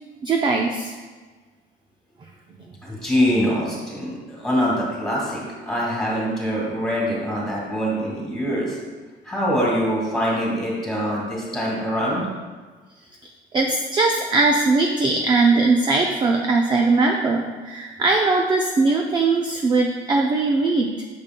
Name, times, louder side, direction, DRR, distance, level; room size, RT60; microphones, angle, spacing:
voice 1, 0.2-0.9 13.2-21.0, right 3 dB, 25° right, 1 dB, 0.5 m, -20 dB
voice 2, 2.8-8.8 9.2-12.3, equal, ahead, -5 dB, 2.1 m, -24 dB
8.5 x 6.9 x 2.2 m, 1.4 s
cardioid pair, 155°, 20 cm